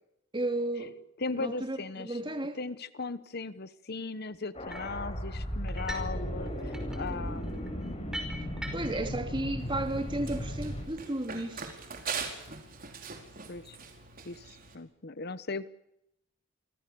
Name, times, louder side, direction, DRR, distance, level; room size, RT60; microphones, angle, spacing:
voice 1, 0.3-1.0 1.4-2.6 8.7-11.7, right 1 dB, 25° right, 2.9 m, -33 dB
voice 2, 1.2-2.2 2.5-8.3 13.5-13.8 14.2-15.7, left 3 dB, 50° left, 1.0 m, -38 dB
sound 1, 4.5-10.8, equal, 30° left, 7.8 m, -36 dB
sound 2, 4.7-5.0 5.7-6.2 6.5-9.1, equal, 5° right, 5.4 m, -42 dB
Run, 9.6-14.7, right 5 dB, 45° right, 4.7 m, -41 dB
29.0 x 24.0 x 7.0 m
head